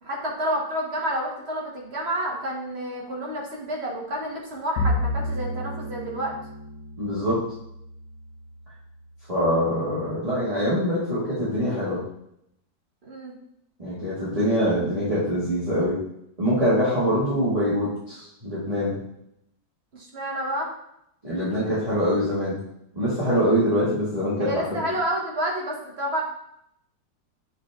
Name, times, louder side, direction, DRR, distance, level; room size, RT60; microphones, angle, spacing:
voice 1, 0.0-6.3 13.0-13.3 19.9-20.7 24.4-26.2, right 1 dB, 40° right, -1 dB, 1.5 m, -29 dB
Bowed string instrument, 4.8-9.2, left 1 dB, 60° left, 1.3 m, -31 dB
voice 2, 7.0-7.4 9.3-12.0 13.8-16.0 16.4-19.0 21.2-22.6 22.9-24.8, equal, 20° right, -11 dB, 2.2 m, -24 dB
8.1 x 4.2 x 3.7 m, 0.77 s
omnidirectional pair, 1.9 m